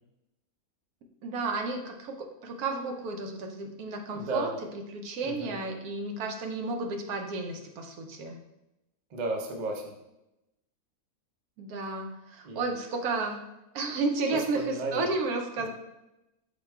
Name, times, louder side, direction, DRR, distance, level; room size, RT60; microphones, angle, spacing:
voice 1, 1.2-8.4 11.6-13.4 13.7-15.7, right 3 dB, 90° right, 3 dB, 1.1 m, -32 dB
voice 2, 4.1-4.6 5.2-5.6 9.1-9.9 12.4-12.7 14.3-15.1 15.6-15.7, right 2 dB, 50° right, 2 dB, 0.5 m, -34 dB
4.9 x 2.2 x 4.5 m, 0.92 s
omnidirectional pair, 1.5 m